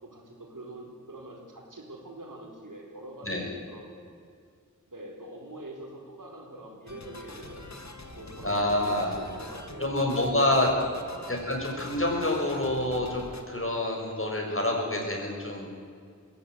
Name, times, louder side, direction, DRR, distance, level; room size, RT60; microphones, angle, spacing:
voice 1, 0.0-3.9 4.9-7.7 8.2-11.4, right 1 dB, 85° right, 1 dB, 4.3 m, -44 dB
sound 1, 6.9-13.4, left 2 dB, 60° left, 2.0 m, -44 dB
voice 2, 8.4-9.1 9.8-10.7 11.3-15.7, left 1 dB, 45° left, 0 dB, 6.0 m, -27 dB
22.0 x 16.0 x 9.3 m, 2.2 s
wide cardioid pair, 55°, 31 cm